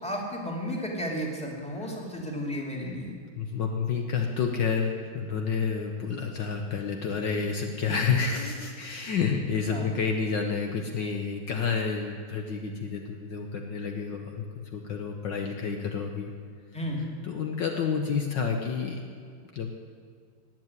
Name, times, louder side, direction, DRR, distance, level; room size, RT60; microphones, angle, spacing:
voice 1, 0.0-3.1 9.7-9.9 16.7-17.1, equal, 5° left, -1 dB, 2.3 m, -33 dB
voice 2, 3.4-14.4 14.7-16.3 17.2-19.0 19.5-19.7, left 5 dB, 60° left, 3 dB, 1.6 m, -29 dB
18.5 x 7.6 x 9.6 m, 2.1 s
omnidirectional pair, 2.3 m